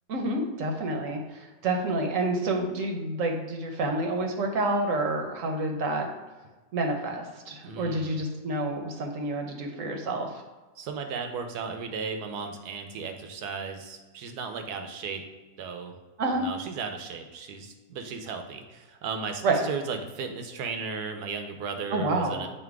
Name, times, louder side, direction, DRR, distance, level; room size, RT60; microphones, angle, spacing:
voice 1, 0.1-6.1 6.7-10.4 16.2-16.4 19.4-19.6 21.9-22.4, right 2 dB, 60° right, 3 dB, 1.0 m, -28 dB
voice 2, 7.6-8.2 10.8-15.2 15.6-16.0 16.3-22.5, right 5 dB, 90° right, 5 dB, 1.3 m, -35 dB
7.4 x 2.9 x 4.6 m, 1.2 s
omnidirectional pair, 1.7 m